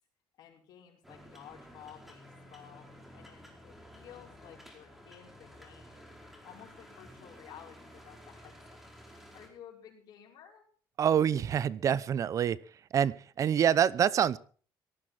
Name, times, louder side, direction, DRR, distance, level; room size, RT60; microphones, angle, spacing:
voice 1, 0.4-8.6 9.1-10.7, left 9 dB, 65° left, 0 dB, 5.6 m, -53 dB
sound 1, 1.0-9.5, equal, 5° right, 4.9 m, -53 dB
voice 2, 11.0-12.6 12.9-14.4, right 9 dB, 45° right, 20 dB, 0.6 m, -26 dB
18.5 x 13.5 x 4.3 m, 0.42 s
cardioid pair, 115°, 8 cm